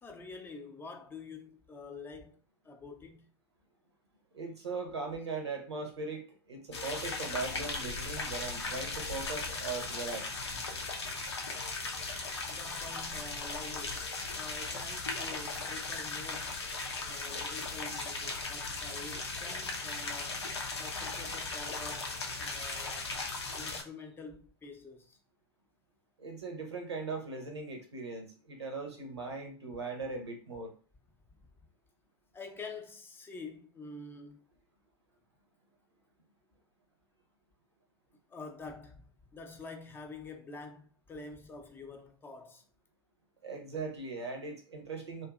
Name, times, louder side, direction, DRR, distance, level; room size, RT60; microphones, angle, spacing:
voice 1, 0.0-2.4 2.6-3.3 10.5-10.6 12.5-14.1 14.3-16.6 17.1-20.4 20.8-23.1 23.6-25.2 32.3-34.4 38.3-42.6, left 3 dB, 15° left, 0.5 m, -47 dB
voice 2, 4.3-10.5 26.2-30.7 43.4-45.3, right 3 dB, 90° right, 0.8 m, -39 dB
sound 1, 6.7-23.8, left 3 dB, 90° left, 0.5 m, -37 dB
2.7 x 2.5 x 2.3 m
hypercardioid pair, 100°, 14 cm